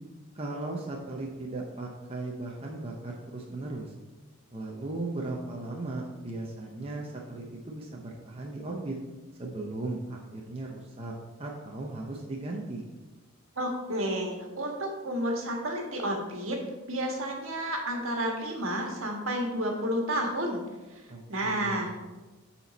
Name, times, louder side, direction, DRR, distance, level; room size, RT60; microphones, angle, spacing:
voice 1, 0.3-3.9 4.5-9.0 9.4-11.1 11.4-12.8 21.1-21.9, right 2 dB, 25° right, -2 dB, 0.7 m, -37 dB
voice 2, 13.6-16.6 16.9-20.6 20.9-21.0 21.3-21.9, right 1 dB, 70° right, 1 dB, 1.6 m, -31 dB
9.1 x 4.4 x 4.1 m, 1.2 s
head